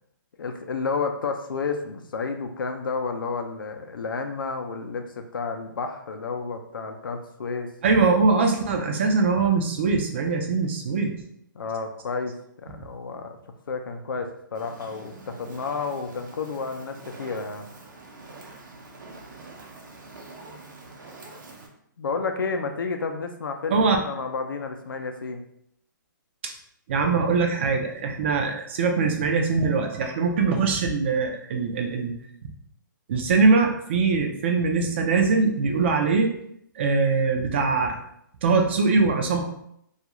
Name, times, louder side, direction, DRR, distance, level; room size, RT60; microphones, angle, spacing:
voice 1, 0.4-7.7 11.5-13.4 13.7-17.7 22.0-25.4, left 4 dB, 90° left, 5 dB, 0.5 m, -31 dB
voice 2, 7.8-11.2 23.7-24.0 26.4-26.5 26.9-32.2 33.1-36.3 36.8-38.0 38.4-39.5, right 4 dB, 35° right, 3 dB, 0.4 m, -22 dB
Fire, 14.5-21.7, right 3 dB, 65° right, 0.7 m, -45 dB
2.4 x 2.3 x 2.9 m, 0.72 s
hypercardioid pair, 160°, 11 cm